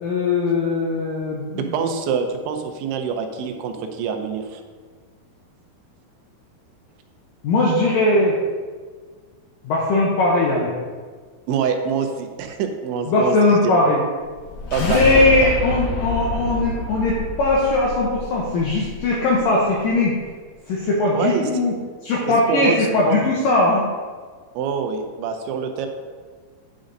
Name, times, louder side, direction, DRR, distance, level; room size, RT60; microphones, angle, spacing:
voice 1, 0.0-1.7 7.4-8.4 9.6-10.7 13.1-14.0 14.8-20.2 20.7-21.7 22.0-23.9, left 2 dB, 80° left, -3 dB, 2.0 m, -19 dB
voice 2, 1.7-4.6 11.5-13.8 14.7-15.5 21.1-21.5 22.3-22.7 23.1-23.2 24.5-25.9, right 6 dB, 90° right, 6 dB, 3.0 m, -25 dB
sound 1, 14.3-19.4, left 2 dB, 60° left, 3.4 m, -28 dB
10.0 x 5.2 x 3.9 m, 1.5 s
omnidirectional pair, 5.1 m